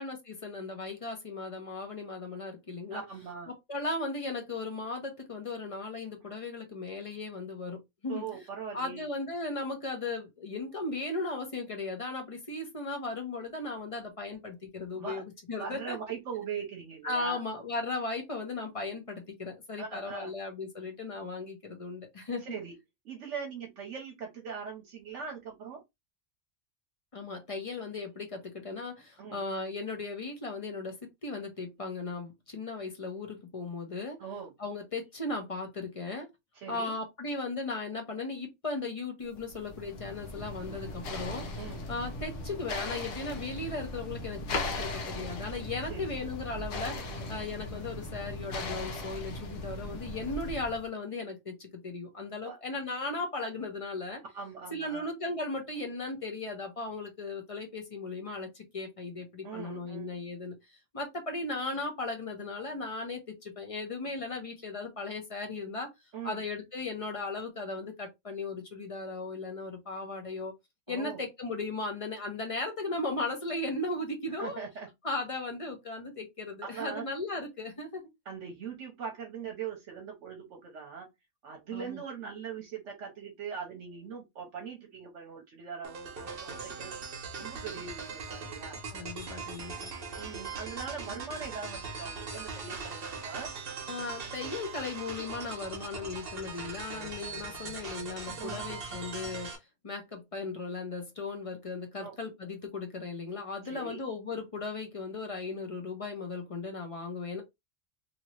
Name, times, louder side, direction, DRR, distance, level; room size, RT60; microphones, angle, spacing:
voice 1, 0.0-3.0 3.5-8.2 8.7-16.0 17.0-22.6 27.1-34.2 34.6-36.3 36.7-41.4 41.9-54.2 54.7-65.9 66.2-70.5 70.9-74.6 75.0-78.0 81.7-82.0 88.9-89.9 93.9-99.6 99.8-107.4, left 3 dB, 30° left, 0.9 m, -37 dB
voice 2, 2.9-3.5 8.1-9.1 14.9-15.2 15.6-17.4 19.8-20.3 22.4-22.8 23.0-25.8 29.2-29.4 34.2-34.5 36.5-36.9 41.6-41.8 44.8-44.9 45.9-46.4 52.4-52.6 54.3-55.1 59.4-60.1 66.1-66.4 70.9-71.2 74.4-74.9 76.7-77.1 78.3-81.1 81.4-89.1 90.2-93.5 98.4-98.7 102.0-102.2 103.6-104.0, right 6 dB, 75° right, 1.1 m, -41 dB
sound 1, 39.4-50.9, left 2 dB, 80° left, 1.1 m, -38 dB
sound 2, 85.8-99.6, right 4 dB, 50° right, 1.1 m, -40 dB
2.8 x 2.8 x 3.1 m
omnidirectional pair, 1.3 m